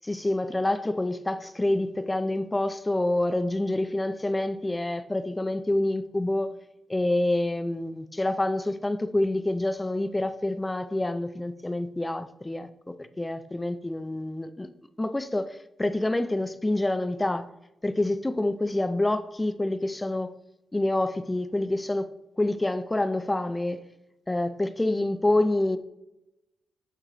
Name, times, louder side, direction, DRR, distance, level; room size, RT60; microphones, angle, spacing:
voice 1, 0.0-6.5 6.9-14.7 15.0-17.5 17.8-20.3 20.7-22.1 22.4-23.9 24.3-25.8, left 1 dB, 20° left, 0.5 m, -27 dB
10.0 x 3.7 x 3.1 m
hypercardioid pair, 40°, 0 cm